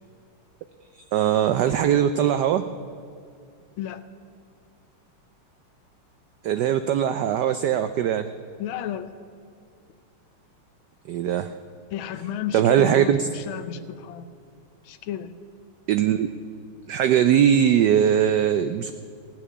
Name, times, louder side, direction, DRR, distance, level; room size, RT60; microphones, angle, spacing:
voice 1, 0.9-2.6 6.4-8.3 11.1-11.5 12.5-13.3 15.9-16.3 16.9-18.9, right 9 dB, 85° right, 10 dB, 0.9 m, -20 dB
voice 2, 8.6-9.1 11.9-14.3 14.8-15.3, left 10 dB, 75° left, 11 dB, 1.5 m, -32 dB
17.0 x 6.0 x 9.5 m, 2.3 s
omnidirectional pair, 2.4 m